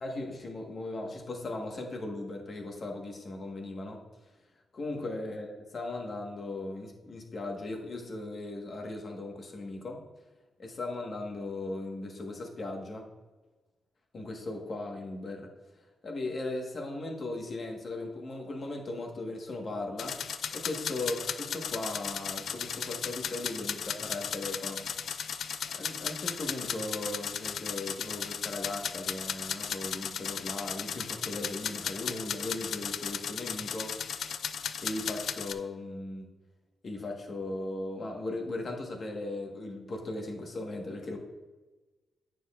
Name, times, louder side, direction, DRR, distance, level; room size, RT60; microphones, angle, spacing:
voice 1, 0.0-4.0 4.7-10.0 10.6-13.1 14.1-15.5 16.0-20.2 20.5-24.8 25.6-34.0 34.8-36.3 36.8-41.2, left 2 dB, 45° left, 1 dB, 1.3 m, -38 dB
sound 1, 20.0-35.5, left 7 dB, 70° left, 0.4 m, -36 dB
9.2 x 6.2 x 2.4 m, 1.2 s
cardioid pair, 115°, 0 cm